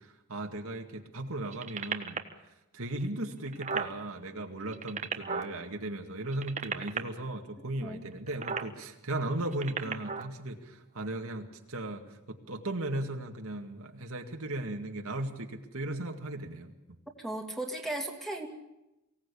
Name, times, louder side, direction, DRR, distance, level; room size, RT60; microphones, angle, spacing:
voice 1, 0.0-2.2 2.7-17.0, right 1 dB, 70° right, 3 dB, 2.2 m, -37 dB
sound 1, 1.5-2.3 3.0-3.1 3.3-3.9 4.6-5.5 6.2-7.0 8.3-8.7 9.4-10.3 11.0-11.1, right 5 dB, 30° right, 1.4 m, -34 dB
voice 2, 17.2-18.5, right 1 dB, ahead, 2 dB, 2.7 m, -36 dB
24.0 x 17.5 x 8.6 m, 0.95 s
head